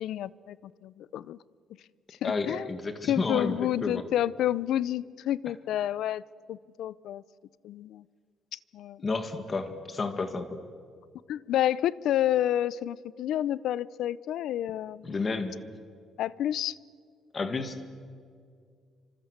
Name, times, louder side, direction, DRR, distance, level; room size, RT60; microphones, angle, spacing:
voice 1, 0.0-1.4 2.2-2.7 3.1-6.2 6.5-7.2 7.6-8.0 8.5-9.0 11.3-15.3 16.2-16.8, left 12 dB, 75° left, 20 dB, 0.6 m, -29 dB
voice 2, 2.2-4.0 9.0-10.6 15.0-15.6 17.3-17.8, left 3 dB, 25° left, 8 dB, 2.0 m, -31 dB
27.5 x 25.5 x 8.1 m, 2.1 s
cardioid pair, 165°, 0 cm